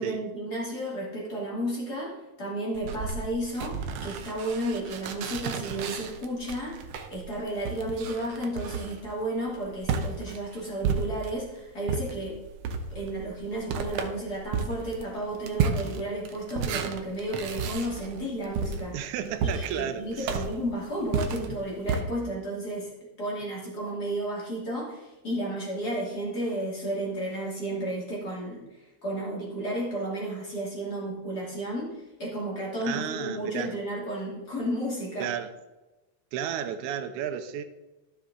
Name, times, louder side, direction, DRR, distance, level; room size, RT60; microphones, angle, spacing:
voice 1, 0.0-6.8 7.1-12.4 12.9-19.1 19.4-22.9 23.2-35.3, right 1 dB, 35° left, 3.1 m, -33 dB
sound 1, 2.7-11.5 11.9-22.0, right 5 dB, 70° right, 1.6 m, -33 dB
voice 2, 18.9-20.4 32.8-33.7 35.2-35.5 36.3-37.6, right 9 dB, 85° right, 2.1 m, -33 dB
13.0 x 6.5 x 3.8 m
omnidirectional pair, 3.4 m